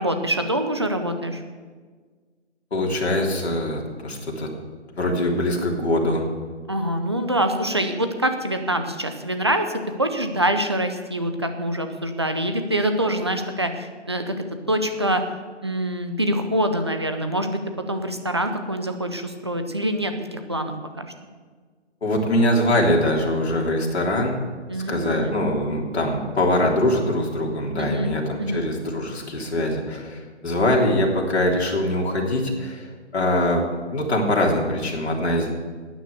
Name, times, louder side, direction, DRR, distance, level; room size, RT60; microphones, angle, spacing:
voice 1, 0.0-1.4 6.7-14.3 14.7-15.2 15.6-17.6 17.9-21.1 24.7-25.3 27.8-28.1 28.4-28.6, right 1 dB, 25° right, 7 dB, 0.6 m, -25 dB
voice 2, 2.7-4.5 5.0-6.3 22.0-24.4 24.7-33.7 33.9-35.5, left 1 dB, 60° left, -1 dB, 3.4 m, -23 dB
12.0 x 9.3 x 8.1 m, 1.5 s
hypercardioid pair, 170°, 36 cm